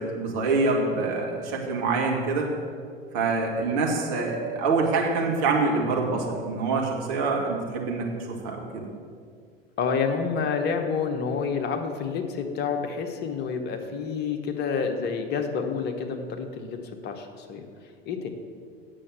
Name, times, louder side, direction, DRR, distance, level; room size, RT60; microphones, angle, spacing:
voice 1, 0.0-2.5 3.1-8.8, right 3 dB, 50° right, -1 dB, 2.1 m, -25 dB
voice 2, 9.8-17.6 18.1-18.3, left 5 dB, 35° left, 4 dB, 1.1 m, -29 dB
8.8 x 6.8 x 6.9 m, 2.1 s
figure-of-eight pair, 75°, 30 cm